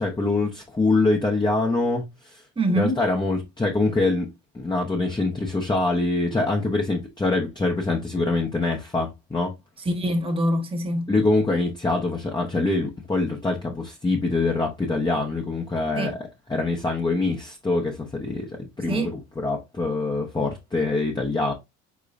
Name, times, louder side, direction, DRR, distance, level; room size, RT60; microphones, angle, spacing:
voice 1, 0.0-2.4 2.8-4.3 4.5-9.5 11.1-21.5, left 2 dB, 15° left, 0.8 m, -24 dB
voice 2, 2.6-3.0 9.8-11.1 16.0-16.2 18.9-19.1, right 1 dB, 20° right, 1.3 m, -24 dB
5.1 x 3.7 x 2.5 m
cardioid pair, 85°, 30 cm